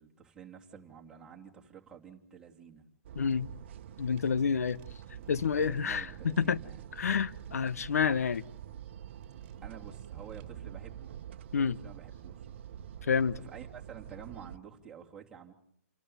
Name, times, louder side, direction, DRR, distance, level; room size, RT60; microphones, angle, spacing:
voice 1, 0.0-2.8 5.2-6.8 9.6-11.1 11.7-12.5 13.4-15.5, right 7 dB, 10° right, 3.0 m, -50 dB
sound 1, 3.0-14.6, right 10 dB, 45° right, 1.2 m, -46 dB
voice 2, 3.2-3.5 4.0-4.8 5.3-6.1 6.4-6.6 7.0-8.4 11.5-11.8 13.1-13.4, left 6 dB, 75° left, 0.9 m, -28 dB
sound 2, 4.2-4.3 4.7-6.6 7.1-7.6 8.1-8.7 9.2-10.5, right 13 dB, 25° right, 2.9 m, -58 dB
30.0 x 12.5 x 9.5 m
hypercardioid pair, 155°, 8 cm